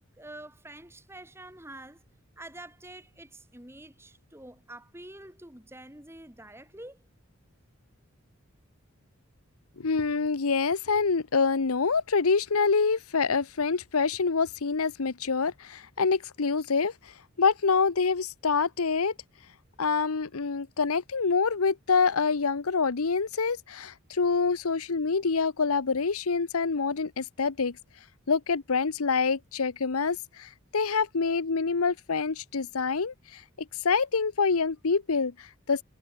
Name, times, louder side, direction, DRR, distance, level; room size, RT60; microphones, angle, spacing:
voice 1, 0.0-2.0 2.4-7.0, right 1 dB, 10° right, 3.9 m, -47 dB
voice 2, 9.8-19.1 19.8-27.8 28.3-33.4 33.8-35.8, left 5 dB, 85° left, 0.9 m, -26 dB
head